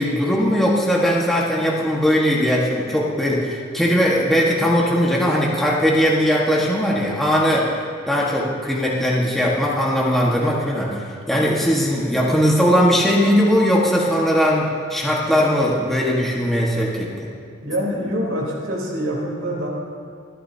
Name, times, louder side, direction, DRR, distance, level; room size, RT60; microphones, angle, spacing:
voice 1, 0.0-7.7 8.1-17.1, equal, ahead, -5 dB, 1.5 m, -19 dB
voice 2, 17.6-19.7, equal, 65° right, -3 dB, 3.7 m, -25 dB
26.0 x 10.0 x 2.8 m, 2.4 s
head